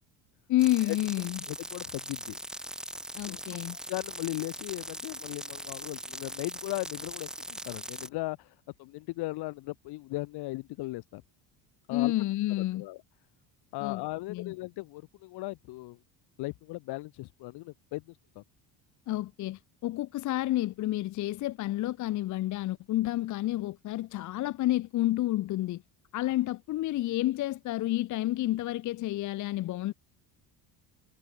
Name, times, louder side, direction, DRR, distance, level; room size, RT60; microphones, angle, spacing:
voice 1, 0.5-1.4 3.2-3.8 11.9-12.9 13.8-14.0 14.3-14.5 19.1-25.8 26.1-29.9, left 15 dB, 45° left, 0.9 m, -30 dB
sound 1, 0.6-8.1, right 1 dB, ahead, 0.3 m, -41 dB
voice 2, 1.5-2.4 3.2-8.5 8.8-11.2 11.9-12.1 12.7-13.0 13.7-16.0 16.4-18.4, left 20 dB, 65° left, 2.0 m, -37 dB
cardioid pair, 170°, 43 cm